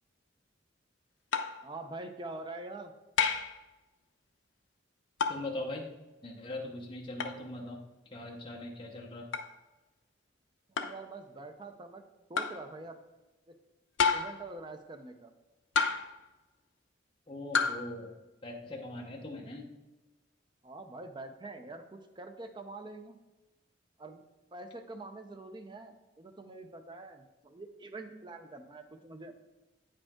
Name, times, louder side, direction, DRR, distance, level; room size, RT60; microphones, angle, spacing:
sound 1, 1.3-1.6 3.2-3.6 5.2-5.5 7.2-7.4 9.3-9.5 10.8-11.0 12.4-12.6 14.0-14.5 15.8-16.2 17.5-17.8, left 5 dB, 70° left, 0.5 m, -29 dB
voice 1, 1.6-2.9 10.7-12.0 12.3-13.0 13.5-13.6 14.1-15.3 20.6-23.2 24.0-24.2 24.5-29.3, right 2 dB, 25° right, 6 dB, 0.6 m, -45 dB
voice 2, 5.3-5.9 6.2-7.8 8.1-9.3 17.3-18.1 18.4-19.7, left 1 dB, 25° left, -1 dB, 0.9 m, -41 dB
8.7 x 5.1 x 3.6 m, 1.1 s
head